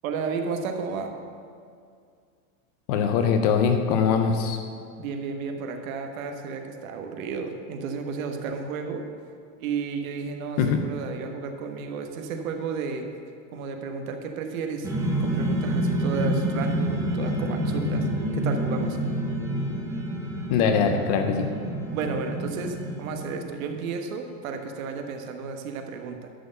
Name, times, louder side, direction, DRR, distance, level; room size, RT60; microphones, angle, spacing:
voice 1, 0.0-1.1 5.0-9.0 9.6-13.1 13.5-14.9 15.2-18.1 18.3-19.0 21.9-26.3, right 5 dB, 80° right, 4 dB, 1.3 m, -32 dB
voice 2, 2.9-4.6 10.6-10.8 20.5-21.5, left 6 dB, 30° left, 6 dB, 0.4 m, -22 dB
sound 1, 14.8-23.5, right 1 dB, 10° right, 0.9 m, -28 dB
11.0 x 4.5 x 7.8 m, 2.3 s
supercardioid pair, 165°, 41 cm